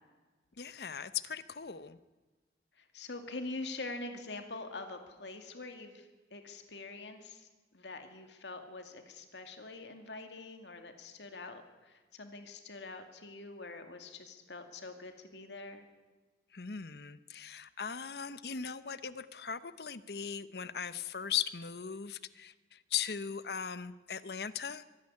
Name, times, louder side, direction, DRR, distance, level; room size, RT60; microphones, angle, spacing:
voice 1, 0.6-2.0 16.5-24.8, left 8 dB, 65° left, 15 dB, 0.8 m, -38 dB
voice 2, 2.8-7.5 7.7-15.9, left 3 dB, 85° left, 6 dB, 2.3 m, -45 dB
24.0 x 11.0 x 9.7 m, 1.3 s
head